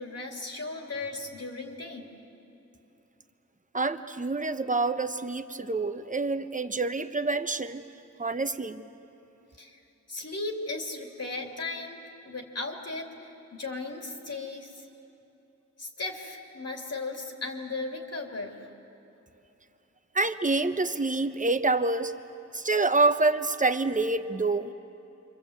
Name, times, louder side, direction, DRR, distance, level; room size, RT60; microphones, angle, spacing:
voice 1, 0.0-2.1 9.6-9.8 10.1-14.9 15.8-18.6, left 3 dB, 60° left, 1 dB, 3.0 m, -36 dB
voice 2, 3.7-7.8 8.2-8.8 20.1-22.1 22.5-24.7, right 3 dB, 25° right, 9 dB, 1.0 m, -27 dB
28.0 x 25.5 x 8.1 m, 3.0 s
wide cardioid pair, 105°, 29 cm